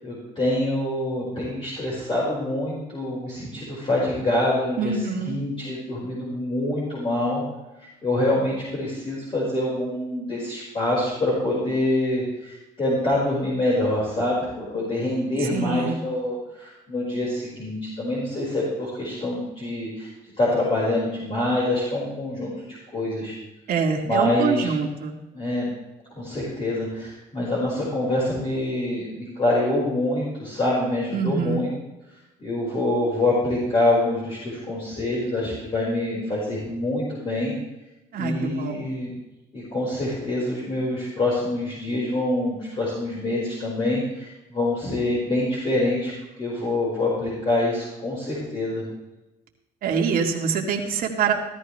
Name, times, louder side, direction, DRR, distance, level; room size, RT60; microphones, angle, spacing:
voice 1, 0.0-7.4 8.0-20.1 20.4-23.4 24.0-24.7 25.3-25.7 26.1-31.7 32.4-37.5 38.1-39.1 39.5-46.1 46.4-48.8, left 1 dB, 35° left, -6 dB, 5.0 m, -25 dB
voice 2, 4.8-5.4 15.5-16.0 23.7-25.2 31.1-31.7 38.1-38.8 49.8-51.3, right 6 dB, 60° right, 1 dB, 2.3 m, -25 dB
15.5 x 13.5 x 3.3 m, 0.99 s
cardioid pair, 110°, 17 cm